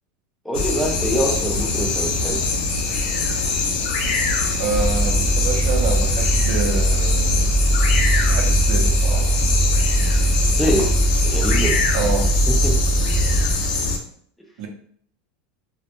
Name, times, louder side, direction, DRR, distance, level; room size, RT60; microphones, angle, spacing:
voice 1, 0.4-2.4 10.5-10.9 11.2-11.8 12.6-12.7, right 1 dB, ahead, -1 dB, 0.5 m, -24 dB
sound 1, 0.5-14.0, left 3 dB, 75° left, 0.5 m, -23 dB
voice 2, 4.6-7.5 8.3-9.4 11.9-12.3 14.6-14.7, right 4 dB, 60° right, 3 dB, 0.5 m, -27 dB
sound 2, 4.7-13.5, right 1 dB, 15° right, 0.8 m, -20 dB
2.1 x 2.0 x 2.9 m, 0.62 s
supercardioid pair, 145°, 4 cm